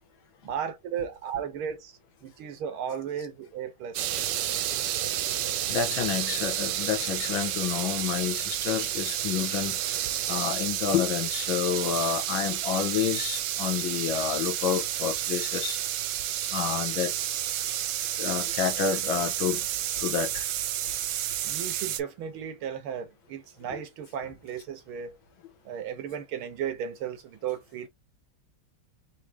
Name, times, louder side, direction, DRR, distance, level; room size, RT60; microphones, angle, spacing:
voice 1, 0.4-1.9 2.2-4.1 21.4-25.2 25.7-27.9, right 8 dB, 90° right, 1.8 m, -35 dB
sound 1, 3.9-22.0, right 11 dB, 70° right, 1.1 m, -30 dB
voice 2, 5.7-9.8 10.3-15.8 16.5-17.1 18.2-19.6 20.0-20.5, left 8 dB, 75° left, 1.7 m, -29 dB
4.7 x 2.7 x 3.2 m
omnidirectional pair, 2.3 m